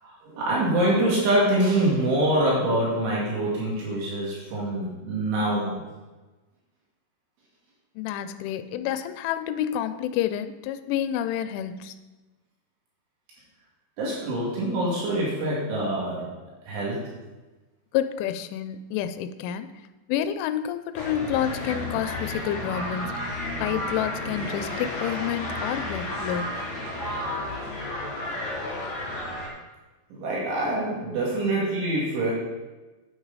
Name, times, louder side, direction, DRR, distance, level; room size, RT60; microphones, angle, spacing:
voice 1, 0.0-5.8 14.0-16.3 16.7-17.1 30.1-32.3, right 1 dB, 75° right, -5 dB, 4.5 m, -25 dB
voice 2, 8.0-11.9 17.9-19.7 20.1-23.3 23.6-26.5, left 10 dB, 85° left, 10 dB, 3.0 m, -29 dB
sound 1, 20.9-29.5, left 1 dB, 40° left, 4.0 m, -32 dB
9.4 x 9.1 x 4.1 m, 1.2 s
omnidirectional pair, 5.7 m